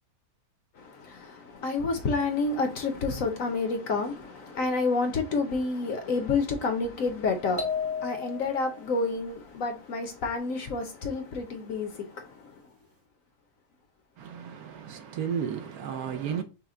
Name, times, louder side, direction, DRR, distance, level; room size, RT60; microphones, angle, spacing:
voice 1, 0.8-12.5, left 3 dB, 60° left, 1.0 m, -29 dB
sound 1, 7.6-8.8, left 5 dB, 20° right, 0.4 m, -32 dB
voice 2, 14.2-16.4, right 8 dB, 70° right, 1.0 m, -33 dB
5.6 x 2.1 x 3.7 m
omnidirectional pair, 1.8 m